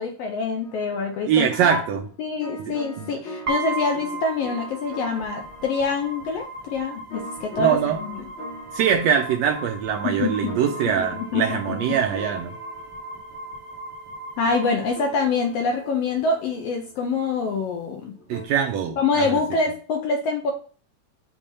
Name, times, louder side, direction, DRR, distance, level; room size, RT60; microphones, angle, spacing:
voice 1, 0.0-1.8 2.2-8.2 10.0-11.8 12.1-12.2 14.4-18.1 19.0-20.5, left 4 dB, 75° left, 3 dB, 1.5 m, -26 dB
sound 1, 0.6-18.4, left 1 dB, 55° left, 1.6 m, -43 dB
voice 2, 1.3-2.0 2.7-3.1 7.6-8.0 8.7-12.5 18.3-19.4, right 8 dB, 80° right, 4 dB, 1.6 m, -23 dB
sound 2, 3.5-15.5, right 3 dB, 50° right, 1.5 m, -36 dB
6.9 x 2.8 x 5.4 m, 0.41 s
omnidirectional pair, 3.5 m